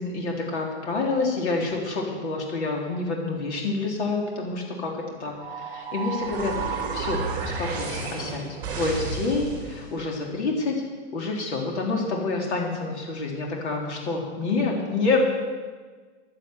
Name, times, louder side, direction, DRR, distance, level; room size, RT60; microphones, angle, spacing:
voice 1, 0.0-4.9 5.2-6.5 6.9-10.7 11.1-15.2, left 3 dB, 75° left, -1 dB, 3.4 m, -28 dB
sound 1, 5.4-9.9, right 4 dB, 10° right, 4.3 m, -31 dB
12.0 x 11.0 x 7.9 m, 1.4 s
supercardioid pair, 170°, 34 cm